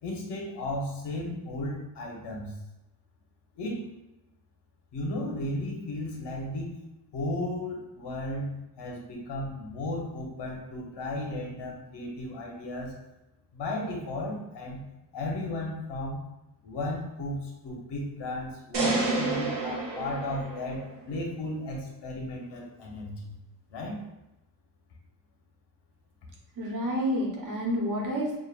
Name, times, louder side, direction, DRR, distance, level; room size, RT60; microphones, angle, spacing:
voice 1, 0.0-2.6 3.5-3.8 4.9-6.7 7.1-12.9 13.5-14.9 15.1-16.2 16.6-23.4 23.7-24.0, left 1 dB, 70° left, -1 dB, 1.2 m, -34 dB
sound 1, 18.7-21.0, right 3 dB, 70° right, 1.3 m, -29 dB
voice 2, 26.6-28.4, equal, 45° right, -2 dB, 1.2 m, -29 dB
6.4 x 2.6 x 2.5 m, 0.94 s
cardioid pair, 150°, 43 cm